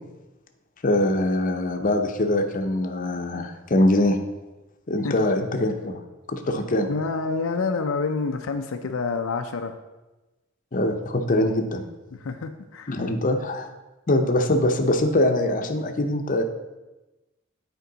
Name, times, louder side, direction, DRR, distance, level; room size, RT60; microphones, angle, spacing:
voice 1, 0.8-4.2 4.9-6.0 6.3-6.9 10.7-11.8 12.9-13.7 14.1-16.4, left 1 dB, 40° left, 5 dB, 0.7 m, -23 dB
voice 2, 6.9-9.7 12.1-12.9, left 4 dB, 80° left, 6 dB, 0.5 m, -28 dB
9.4 x 4.5 x 3.9 m, 1.1 s
head